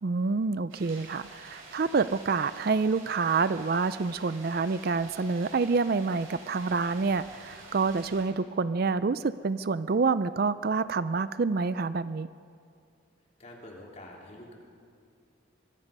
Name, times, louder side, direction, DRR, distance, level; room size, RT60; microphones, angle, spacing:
voice 1, 0.0-12.3, right 4 dB, 45° right, 14 dB, 0.4 m, -27 dB
sound 1, 0.7-8.2, right 3 dB, 85° right, 8.0 m, -49 dB
voice 2, 13.4-14.5, left 1 dB, 35° left, -2 dB, 3.8 m, -46 dB
25.0 x 22.5 x 5.4 m, 2.4 s
head